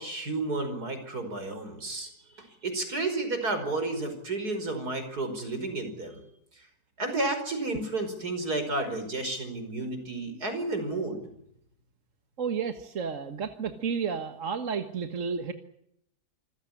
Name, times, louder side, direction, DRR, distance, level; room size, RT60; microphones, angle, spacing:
voice 1, 0.0-2.1 2.3-6.2 6.6-6.7 7.0-11.2, right 2 dB, 75° right, 7 dB, 5.7 m, -32 dB
voice 2, 12.4-15.5, right 6 dB, 55° right, 8 dB, 1.7 m, -31 dB
27.0 x 15.5 x 9.9 m, 0.75 s
omnidirectional pair, 1.7 m